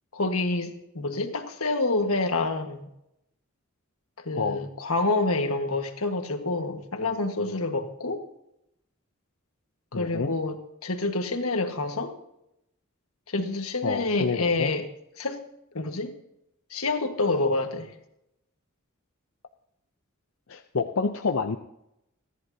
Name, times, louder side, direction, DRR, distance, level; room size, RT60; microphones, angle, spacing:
voice 1, 0.1-2.9 4.2-8.3 9.9-12.1 13.3-14.8 15.2-15.4 15.7-16.1 16.7-17.9, left 2 dB, 90° left, 5 dB, 1.6 m, -27 dB
voice 2, 9.9-10.3 13.8-14.7 20.5-21.6, left 4 dB, 65° left, 6 dB, 0.6 m, -28 dB
28.5 x 11.0 x 2.8 m, 0.83 s
head